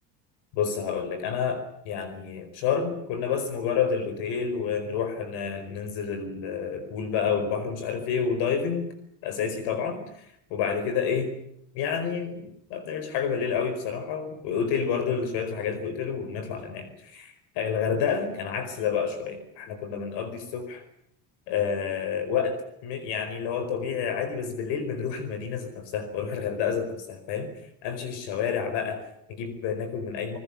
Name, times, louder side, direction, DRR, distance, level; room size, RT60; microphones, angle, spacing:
voice 1, 0.5-8.9 9.2-11.3 11.7-20.8 21.5-27.5 27.8-30.4, left 6 dB, 70° left, 10 dB, 4.9 m, -29 dB
28.0 x 20.5 x 7.1 m, 0.74 s
cardioid pair, 160°, 43 cm